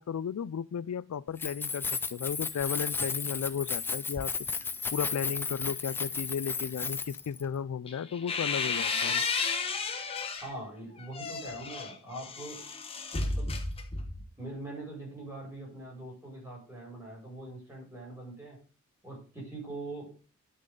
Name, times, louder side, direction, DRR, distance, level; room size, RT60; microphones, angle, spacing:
voice 1, 0.0-4.3 4.9-9.2, left 7 dB, 85° left, 0.4 m, -34 dB
Keys jangling, 1.3-7.4, left 5 dB, 10° left, 0.4 m, -34 dB
sound 1, 7.9-10.5 11.0-14.3, left 4 dB, 25° left, 1.1 m, -33 dB
voice 2, 10.4-12.6 13.1-13.5 14.4-18.6 19.0-20.1, right 2 dB, 15° right, 5.6 m, -42 dB
10.5 x 6.5 x 3.8 m
head